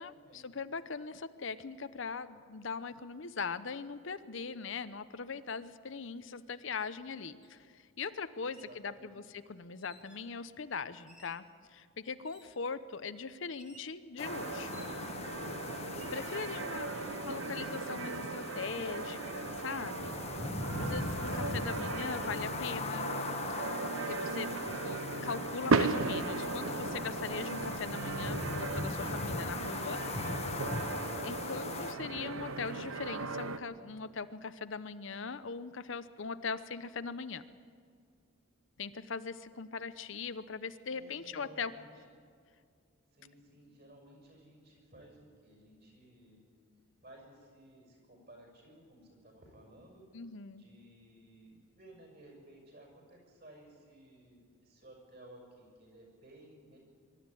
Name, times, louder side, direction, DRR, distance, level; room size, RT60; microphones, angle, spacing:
voice 1, 0.0-14.8 15.4-15.5 16.1-16.9 17.2-20.1 20.8-23.1 24.1-24.5 24.8-30.0 31.2-37.4 38.8-41.7 50.1-50.7, left 5 dB, 65° left, 12 dB, 0.7 m, -40 dB
sound 1, 7.4-7.5 8.4-8.8 9.8-10.3 11.1-11.5 12.2-12.7 13.6-13.9 14.7-15.3 15.8-16.2, right 1 dB, 5° right, 1.8 m, -59 dB
voice 2, 8.4-9.2 16.3-16.9 40.9-41.9 43.1-46.4 47.0-50.0 50.5-56.8, right 1 dB, 50° right, 1 dB, 6.5 m, -57 dB
sound 2, 14.2-31.9, left 3 dB, 30° left, 1.1 m, -40 dB
sound 3, 14.2-33.6, right 3 dB, 85° right, 0.9 m, -37 dB
23.5 x 12.5 x 9.9 m, 2.1 s
head